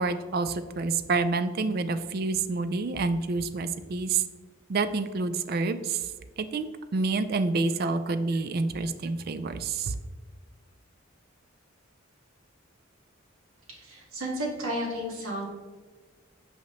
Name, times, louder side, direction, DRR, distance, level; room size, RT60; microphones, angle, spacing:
voice 1, 0.0-4.2 4.7-6.0 6.4-6.7 6.9-9.9, right 3 dB, 45° right, 11 dB, 0.3 m, -28 dB
voice 2, 13.7-15.4, equal, 90° right, -3 dB, 1.9 m, -32 dB
5.7 x 5.6 x 3.0 m, 1.4 s
head